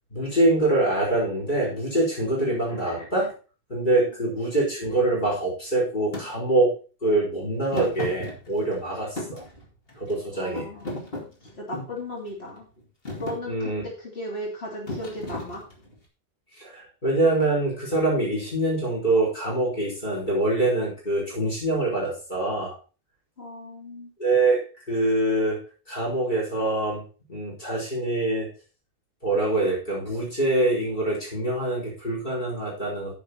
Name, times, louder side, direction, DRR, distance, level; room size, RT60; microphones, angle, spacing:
voice 1, 0.1-3.3 3.7-6.7 7.0-9.4 10.0-10.7 13.5-13.8 16.6-22.8 24.2-25.6 25.9-27.0 27.3-28.5 29.2-33.1, right 2 dB, 50° left, -3 dB, 4.7 m, -24 dB
Thump thud, 6.1-6.3 7.7-8.8 9.2-10.2 10.6-12.0 12.6-12.8 13.1-13.4 14.9-15.9, left 1 dB, 70° left, 2.8 m, -34 dB
voice 2, 10.4-11.0 11.6-12.7 13.2-15.6 23.4-24.1, left 1 dB, 90° left, -3 dB, 3.4 m, -36 dB
10.0 x 6.9 x 4.5 m, 0.34 s
omnidirectional pair, 1.0 m